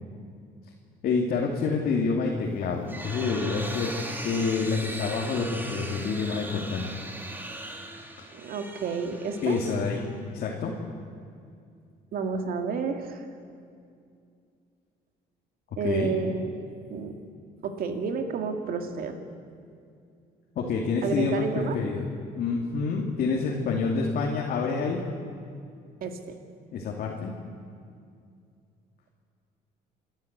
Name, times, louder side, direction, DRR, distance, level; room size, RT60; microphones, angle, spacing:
voice 1, 1.0-3.9 4.2-6.9 9.4-10.7 15.8-16.2 20.6-25.0 26.7-27.3, left 4 dB, 60° left, -1 dB, 2.7 m, -28 dB
sound 1, 2.5-10.4, right 1 dB, 10° right, 2.3 m, -39 dB
voice 2, 8.3-9.6 12.1-13.2 15.8-16.5 16.9-17.1 17.6-19.2 21.0-21.8 26.0-26.4, right 5 dB, 60° right, 6 dB, 2.3 m, -30 dB
28.0 x 13.0 x 8.3 m, 2.4 s
cardioid pair, 110°, 17 cm